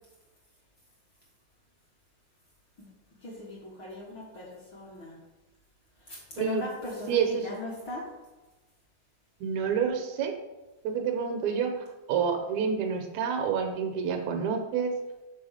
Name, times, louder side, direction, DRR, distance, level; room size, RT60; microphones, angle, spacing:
voice 1, 3.2-5.2 6.0-8.1, left 1 dB, 50° left, -4 dB, 1.6 m, -38 dB
voice 2, 7.1-7.5 9.4-10.4 10.8-15.0, right 6 dB, 75° right, 5 dB, 1.9 m, -28 dB
5.6 x 4.3 x 6.3 m, 1.1 s
omnidirectional pair, 3.4 m